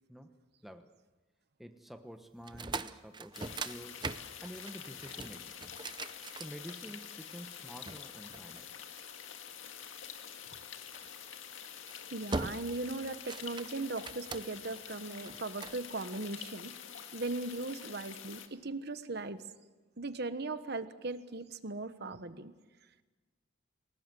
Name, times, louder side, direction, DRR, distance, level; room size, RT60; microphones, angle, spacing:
voice 1, 1.6-4.0 4.4-5.6 6.4-8.7, equal, ahead, 6 dB, 1.1 m, -49 dB
sound 1, 2.4-7.1 7.9-9.2 10.9-11.2 11.7-12.0 12.3-12.9 13.1-14.7 15.3-15.8, right 3 dB, 25° right, 0.7 m, -41 dB
sound 2, 3.3-18.5, left 8 dB, 75° left, 2.0 m, -47 dB
voice 2, 12.1-16.7 17.1-19.4 20.0-22.5, right 2 dB, 55° right, 11 dB, 1.2 m, -38 dB
29.5 x 18.5 x 7.7 m, 1.3 s
head